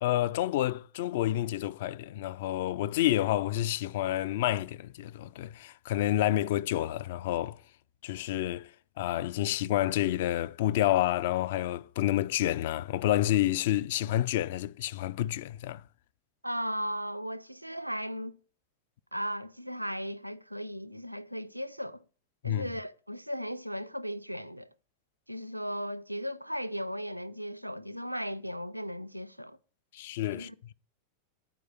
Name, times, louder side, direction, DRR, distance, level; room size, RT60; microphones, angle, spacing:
voice 1, 0.0-7.6 8.0-8.7 9.0-15.8 22.4-22.7 29.9-30.5, left 13 dB, 55° left, 0.3 m, -29 dB
voice 2, 16.4-18.4 19.1-22.0 22.4-24.7 25.3-29.6 30.3-30.7, equal, 90° right, 0.4 m, -36 dB
9.3 x 4.8 x 6.6 m
figure-of-eight pair, 90°, 0 cm